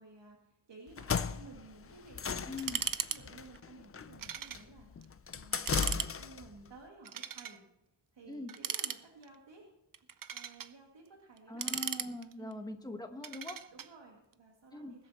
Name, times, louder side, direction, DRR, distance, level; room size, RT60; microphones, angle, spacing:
voice 1, 0.0-2.7 3.1-7.6 8.1-9.7 10.3-11.8 12.4-12.7 13.7-15.1, right 3 dB, 75° right, -1 dB, 2.2 m, -55 dB
sound 1, 0.9-6.5, left 6 dB, 30° left, 0.5 m, -37 dB
voice 2, 2.5-2.8 8.3-8.5 11.5-13.6 14.7-15.0, left 2 dB, 10° left, 5 dB, 1.2 m, -42 dB
sound 2, 2.6-3.2 3.5-3.6 4.2-4.6 5.0-5.1 5.5-6.1 7.0-7.6 8.5-9.4 9.9-10.7 11.4-12.5 13.2-13.9, right 8 dB, 50° right, 0.6 m, -37 dB
20.5 x 8.5 x 4.3 m, 0.87 s
wide cardioid pair, 150°, 44 cm